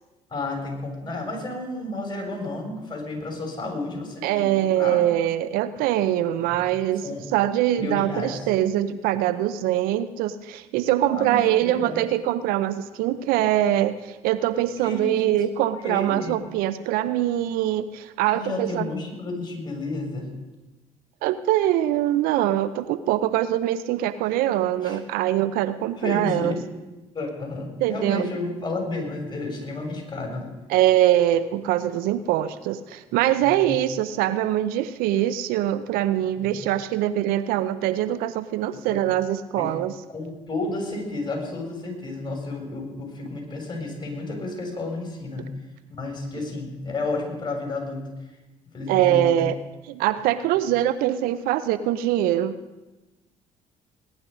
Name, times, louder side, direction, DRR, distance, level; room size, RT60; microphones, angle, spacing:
voice 1, 0.3-5.1 6.5-6.6 7.0-7.2 7.8-8.4 11.1-12.0 14.8-15.3 15.6-16.4 18.3-20.3 24.8-25.0 26.0-26.6 27.1-30.5 33.4-33.8 36.4-36.6 38.7-39.0 39.5-39.7 40.1-45.5 46.0-48.1 48.7-49.3, left 2 dB, 30° left, 1 dB, 6.6 m, -31 dB
voice 2, 4.2-7.0 7.3-18.9 21.2-26.6 27.8-28.3 30.7-39.9 48.9-49.6 49.9-52.6, right 12 dB, 80° right, 14 dB, 0.7 m, -23 dB
20.5 x 10.5 x 5.3 m, 1.1 s
supercardioid pair, 65°, 15 cm